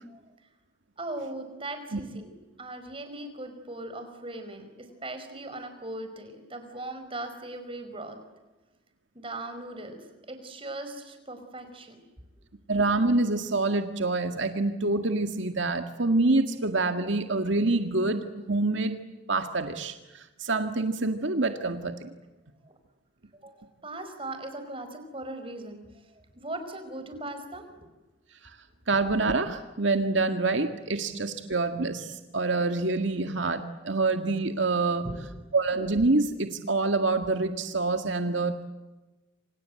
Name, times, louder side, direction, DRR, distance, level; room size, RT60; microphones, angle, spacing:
voice 1, 1.0-8.2 9.1-12.0 22.6-22.7 23.3-27.9 35.0-35.2, right 2 dB, 30° right, 7 dB, 5.0 m, -39 dB
voice 2, 12.7-19.0 19.3-22.1 28.9-35.1 35.5-38.6, right 3 dB, 80° right, 7 dB, 2.0 m, -26 dB
27.5 x 27.0 x 7.8 m, 1.1 s
head